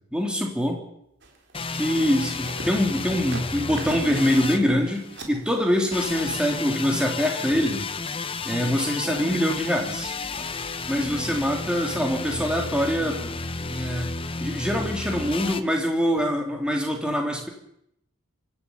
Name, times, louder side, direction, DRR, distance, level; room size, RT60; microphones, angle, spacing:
voice 1, 0.1-0.8 1.7-7.9 8.4-10.1 10.9-13.4 13.7-14.1 14.4-17.5, equal, 5° right, 1 dB, 3.5 m, -24 dB
sound 1, 1.2-7.2 8.8-8.9 9.2-10.5 11.0-11.5 11.8-12.2 12.8-13.1 13.4-14.0 14.4-14.9 15.3-15.7 16.2-16.4 16.7-16.8, right 2 dB, 50° right, 3.9 m, -43 dB
sound 2, 1.5-5.3 5.9-15.6, left 3 dB, 25° left, 1.0 m, -32 dB
25.0 x 12.0 x 8.9 m, 0.76 s
head